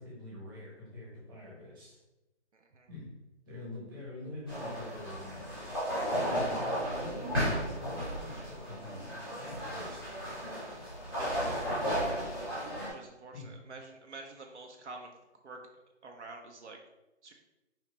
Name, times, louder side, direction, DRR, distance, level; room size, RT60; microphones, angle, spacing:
voice 1, 0.0-2.0 2.9-3.1 3.4-5.4 6.3-9.1 9.3-10.1 13.3-13.5, left 1 dB, 20° right, -6 dB, 1.2 m, -45 dB
voice 2, 2.5-2.9 11.2-11.3 12.8-15.1 15.4-15.6 16.0-16.8 17.2-17.3, right 3 dB, 75° right, 2 dB, 0.8 m, -47 dB
sound 1, 4.5-12.9, equal, ahead, 0.8 m, -34 dB
4.7 x 3.0 x 3.3 m, 0.99 s
hypercardioid pair, 170°, 35 cm